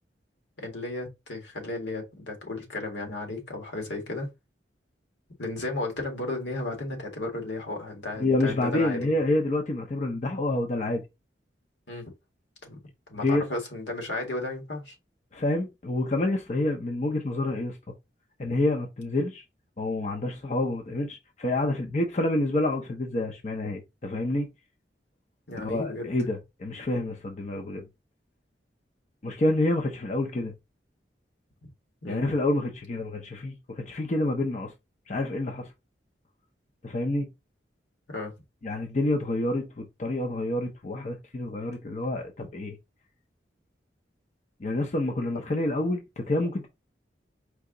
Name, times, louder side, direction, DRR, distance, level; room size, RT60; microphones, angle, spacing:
voice 1, 0.6-4.3 5.4-9.1 11.9-12.1 12.6-12.8 13.1-14.9 18.4-18.5 25.5-26.1 32.0-32.3 38.1-38.3, left 2 dB, 80° left, 1.8 m, -34 dB
voice 2, 8.2-11.0 13.2-13.4 15.3-17.8 18.4-19.4 19.8-24.5 25.6-27.9 29.2-30.5 32.1-34.7 35.1-35.7 36.8-37.3 38.6-42.8 44.6-46.7, left 2 dB, 40° left, 0.7 m, -28 dB
4.7 x 2.8 x 3.8 m
head